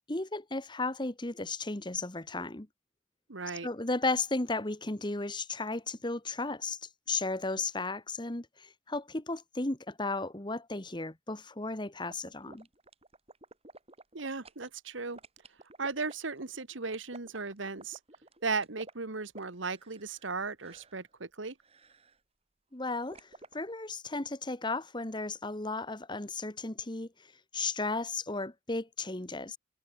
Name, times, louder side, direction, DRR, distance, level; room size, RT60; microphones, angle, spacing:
voice 1, 0.1-2.7 3.6-6.8 7.1-12.7 22.7-23.3 23.5-27.1 27.5-29.6, left 3 dB, 25° left, 1.4 m, -34 dB
voice 2, 3.3-3.7 14.1-15.2 15.8-18.0 18.4-21.5, right 4 dB, 75° right, 1.6 m, -36 dB
sound 1, 12.1-14.7 15.2-20.3 20.6-21.0 21.6-22.2 23.1-23.5, right 2 dB, 30° right, 6.9 m, -53 dB
head